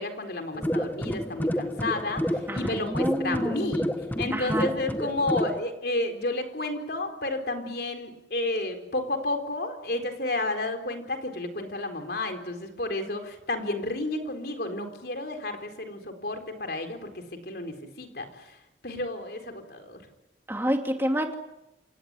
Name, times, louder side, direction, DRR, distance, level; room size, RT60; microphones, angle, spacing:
voice 1, 0.0-3.9 4.2-18.5 18.8-20.0, left 2 dB, 55° left, 6 dB, 4.1 m, -31 dB
sound 1, 0.5-5.6, equal, 10° left, 1.2 m, -29 dB
voice 2, 2.5-3.7 4.3-4.7 20.5-21.3, equal, 10° right, 4 dB, 2.6 m, -28 dB
28.5 x 17.5 x 9.8 m, 0.94 s
head